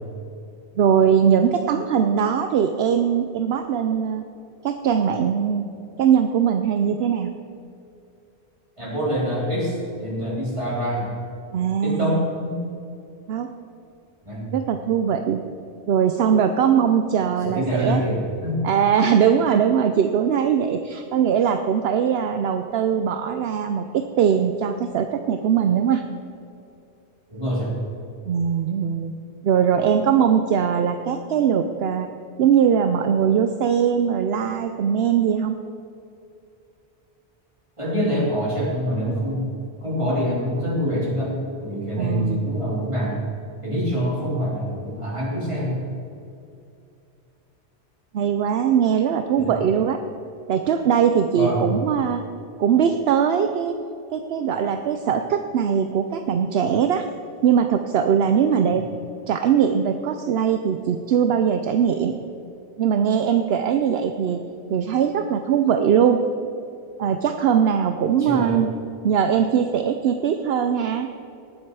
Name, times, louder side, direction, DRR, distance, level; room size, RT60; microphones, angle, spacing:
voice 1, 0.8-4.2 4.6-5.7 6.0-7.3 11.5-12.3 13.3-13.5 14.5-15.4 15.9-18.0 18.6-26.0 28.3-29.1 29.4-32.1 32.4-35.6 42.0-42.5 48.1-50.0 50.5-52.2 52.6-53.7 54.1-57.1 57.4-58.8 59.3-62.1 62.8-64.4 64.7-66.2 67.0-68.7 69.0-71.1, right 8 dB, 70° right, 7 dB, 0.8 m, -21 dB
voice 2, 8.8-11.2 11.8-12.6 14.3-14.5 17.4-18.7 27.3-27.8 37.8-39.4 39.8-43.2 43.6-45.8 49.4-49.5 51.3-51.7 68.2-68.6, equal, 30° right, -6 dB, 3.8 m, -25 dB
18.5 x 7.7 x 4.7 m, 2.6 s
omnidirectional pair, 1.1 m